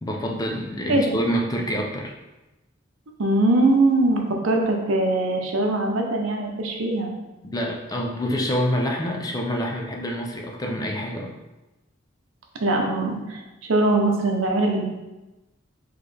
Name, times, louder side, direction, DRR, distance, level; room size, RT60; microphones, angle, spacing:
voice 1, 0.0-2.1 7.4-11.3, equal, 20° left, 1 dB, 0.4 m, -27 dB
voice 2, 3.2-7.1 12.6-14.8, right 2 dB, 85° right, 2 dB, 0.7 m, -21 dB
4.1 x 3.1 x 3.3 m, 1.0 s
head